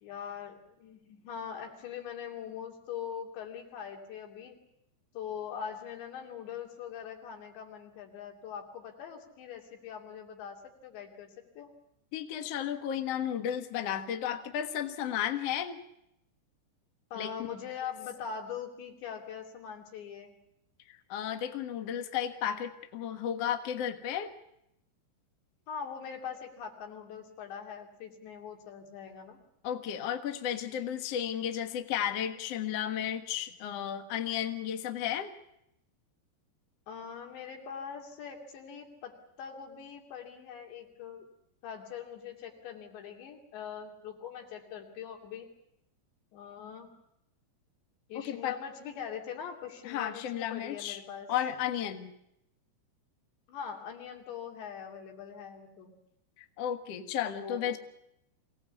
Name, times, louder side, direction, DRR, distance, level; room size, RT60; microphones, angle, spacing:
voice 1, 0.0-4.6 5.1-11.7 17.1-20.4 25.7-29.4 36.9-41.3 41.6-45.5 46.3-46.9 48.1-51.3 53.5-55.9 57.4-57.6, left 7 dB, 80° left, 2 dB, 5.1 m, -42 dB
voice 2, 12.1-15.8 17.2-17.3 20.9-24.3 29.6-35.3 48.1-48.5 49.8-51.0 51.3-52.1 56.4-57.8, left 10 dB, 60° left, 6 dB, 1.8 m, -33 dB
25.0 x 18.0 x 8.3 m, 0.81 s
omnidirectional pair, 5.0 m